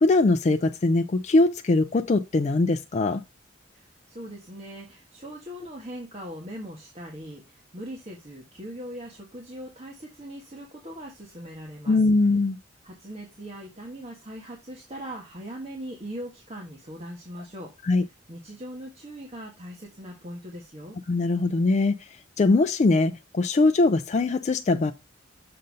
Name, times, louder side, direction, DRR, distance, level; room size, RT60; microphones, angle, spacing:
voice 1, 0.0-3.2 11.9-12.6 17.8-18.0 21.1-21.9 22.4-24.9, left 3 dB, 40° left, 0.4 m, -21 dB
voice 2, 3.7-12.0 12.8-17.7 18.3-21.0, equal, 35° right, 1.5 m, -40 dB
6.7 x 3.9 x 5.2 m
head